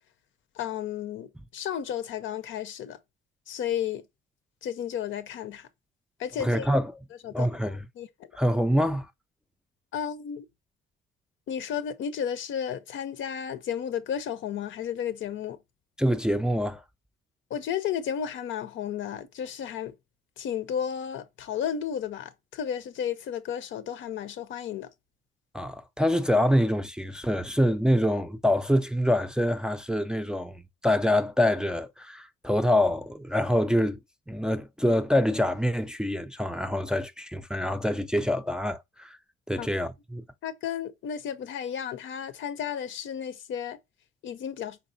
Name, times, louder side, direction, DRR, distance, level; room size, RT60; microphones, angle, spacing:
voice 1, 0.5-3.0 3.5-4.1 4.6-5.7 6.2-6.7 7.2-8.1 9.9-10.5 11.5-15.6 17.5-19.9 20.4-24.9 34.9-35.0 39.6-39.7 40.4-43.8 44.2-44.8, left 8 dB, 75° left, 0.7 m, -33 dB
voice 2, 6.4-6.9 7.3-7.8 8.4-9.1 16.0-16.8 25.5-34.0 34.3-39.2 39.5-40.2, equal, 5° right, 0.4 m, -25 dB
4.8 x 4.0 x 2.6 m
cardioid pair, 90°, 20 cm